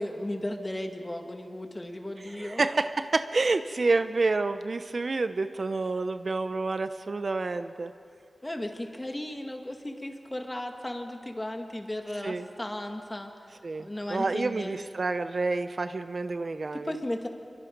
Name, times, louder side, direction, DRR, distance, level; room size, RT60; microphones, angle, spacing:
voice 1, 0.0-2.6 8.4-13.3 13.8-14.8 16.7-17.3, left 1 dB, 20° left, 4 dB, 2.0 m, -35 dB
voice 2, 2.3-7.9 12.2-12.5 13.6-16.9, right 3 dB, 50° right, 10 dB, 0.7 m, -28 dB
26.0 x 23.5 x 5.3 m, 2.4 s
wide cardioid pair, 80°, 0 cm